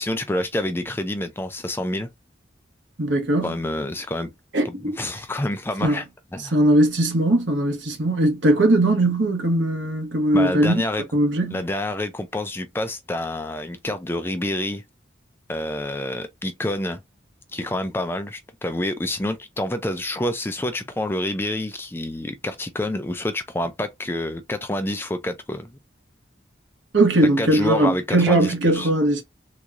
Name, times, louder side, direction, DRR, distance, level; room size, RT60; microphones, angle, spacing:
voice 1, 0.0-2.1 3.4-4.3 4.6-6.0 6.3-6.5 10.3-11.0 11.5-14.8 15.5-17.0 17.5-25.7 27.4-28.9, left 1 dB, 10° left, 0.4 m, -28 dB
voice 2, 3.0-3.5 4.5-5.0 5.8-6.0 6.5-10.7 11.1-11.6 26.9-29.2, right 1 dB, 75° right, 1.2 m, -19 dB
3.5 x 3.0 x 2.5 m
head